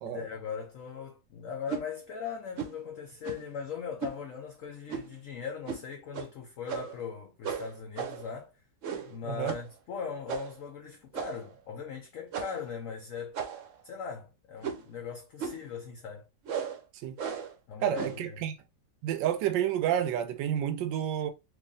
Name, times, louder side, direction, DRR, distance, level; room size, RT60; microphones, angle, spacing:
voice 1, 0.0-8.5 9.1-13.4 13.8-16.3 17.7-18.4, left 6 dB, 65° left, 0.8 m, -39 dB
sound 1, 1.7-1.9 2.6-2.8 3.2-3.5 4.0-4.2 4.9-5.2 5.7-5.8 6.1-6.3 6.7-7.0 7.4-8.3 8.8-9.2 9.5-9.7 10.3-10.6 11.1-11.5 12.3-12.7 13.3-13.8 14.6-14.9 15.4-15.7 16.5-16.8 17.2-17.5 17.9-18.3, right 7 dB, 60° right, 0.9 m, -36 dB
voice 2, 17.8-18.5 19.0-21.3, right 10 dB, 85° right, 1.2 m, -30 dB
3.3 x 2.5 x 3.7 m
omnidirectional pair, 1.9 m